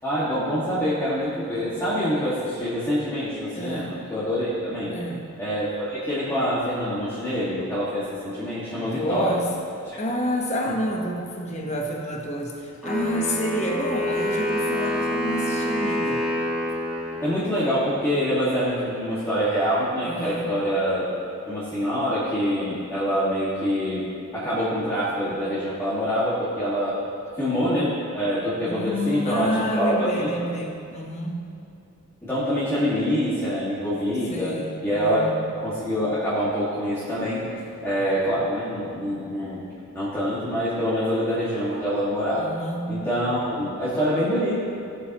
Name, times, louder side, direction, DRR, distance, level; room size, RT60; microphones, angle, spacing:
voice 1, 0.0-4.9 5.4-9.4 10.7-10.8 17.2-21.1 21.5-24.1 24.3-27.0 27.4-30.3 32.2-34.5 34.8-35.3 35.6-37.4 37.8-39.6 39.9-42.5 42.9-44.6, equal, 10° left, -12 dB, 2.0 m, -25 dB
voice 2, 3.5-4.0 4.9-5.2 8.7-9.5 10.0-16.3 20.0-20.5 28.6-31.4 34.3-35.4 37.5-37.6 42.3-43.1, equal, 30° left, 1 dB, 1.1 m, -29 dB
Wind instrument woodwind instrument, 12.8-17.8, left 1 dB, 5° right, 2.3 m, -27 dB
18.0 x 7.7 x 3.0 m, 2.5 s
head